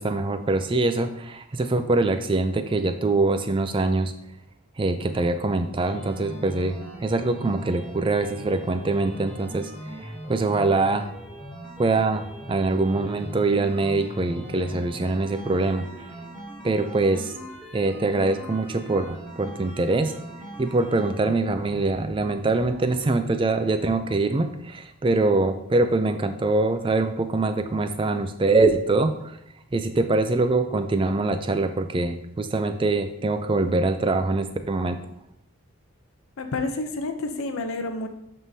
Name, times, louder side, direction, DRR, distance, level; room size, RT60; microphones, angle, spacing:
voice 1, 0.0-4.1 4.8-11.1 11.8-16.1 16.6-17.3 17.7-20.1 20.6-29.4 29.7-35.0, right 3 dB, 25° right, 9 dB, 0.3 m, -24 dB
sound 1, 5.8-22.9, right 1 dB, 5° left, 1.9 m, -40 dB
voice 2, 36.4-38.1, left 2 dB, 70° left, 6 dB, 0.6 m, -29 dB
11.0 x 3.7 x 2.7 m, 0.81 s
head